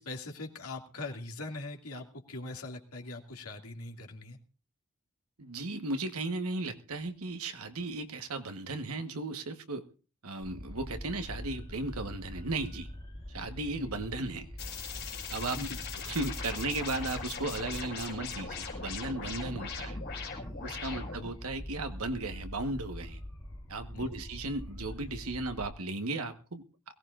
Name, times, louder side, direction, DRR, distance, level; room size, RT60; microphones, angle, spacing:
voice 1, 0.0-4.4 13.8-13.9 15.4-15.8 20.9-21.0 23.9-24.1, left 2 dB, 80° left, 2 dB, 2.4 m, -42 dB
voice 2, 5.4-9.8 10.2-12.9 13.3-14.5 15.3-15.7 16.0-20.0 20.6-23.2 23.7-26.6, right 2 dB, 75° right, 7 dB, 1.3 m, -36 dB
sound 1, 10.4-25.7, equal, 20° left, 3.8 m, -44 dB
sound 2, 14.6-21.3, left 5 dB, 45° left, 5.5 m, -40 dB
22.0 x 17.0 x 2.5 m, 0.36 s
head